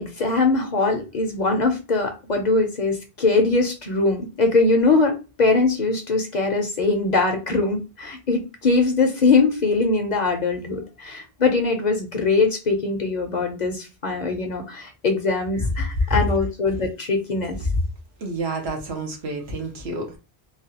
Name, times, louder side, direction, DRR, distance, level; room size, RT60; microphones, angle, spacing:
voice 1, 0.0-17.6, left 3 dB, 50° left, 4 dB, 0.7 m, -22 dB
voice 2, 18.2-20.2, right 3 dB, 75° right, 2 dB, 1.1 m, -30 dB
3.2 x 2.3 x 2.7 m, 0.30 s
omnidirectional pair, 1.1 m